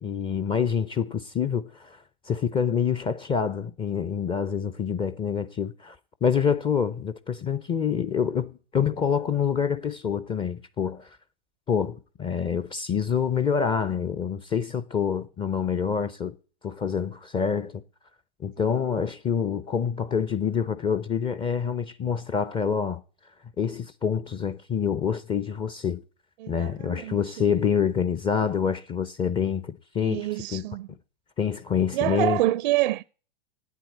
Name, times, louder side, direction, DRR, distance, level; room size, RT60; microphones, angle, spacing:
voice 1, 0.0-2.0 2.3-6.0 6.2-11.1 11.7-16.3 16.6-17.8 18.4-23.0 23.6-26.0 26.5-30.6 31.4-32.4, left 7 dB, 15° left, 0.5 m, -26 dB
voice 2, 26.4-27.4 30.0-30.9 31.9-33.0, right 16 dB, 55° right, 0.5 m, -27 dB
8.8 x 8.2 x 9.0 m
hypercardioid pair, 110°, 29 cm